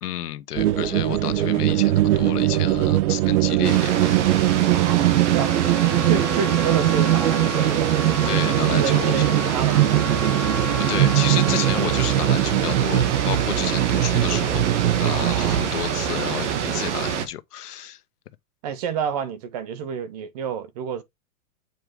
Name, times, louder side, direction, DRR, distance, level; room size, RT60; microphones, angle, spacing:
voice 1, 0.0-4.2 4.6-4.7 8.2-9.3 10.8-14.7 15.0-18.0, left 12 dB, 90° left, 1.2 m, -31 dB
sound 1, 0.5-15.6, right 14 dB, 75° right, 0.8 m, -21 dB
sound 2, 3.6-17.3, right 8 dB, 50° right, 1.6 m, -26 dB
voice 2, 4.7-8.0 8.4-10.3 15.1-15.7 18.6-21.0, right 7 dB, 25° right, 0.6 m, -30 dB
Trumpet, 5.4-12.3, left 4 dB, ahead, 1.7 m, -34 dB
7.9 x 4.7 x 3.5 m
supercardioid pair, 160°, 45 cm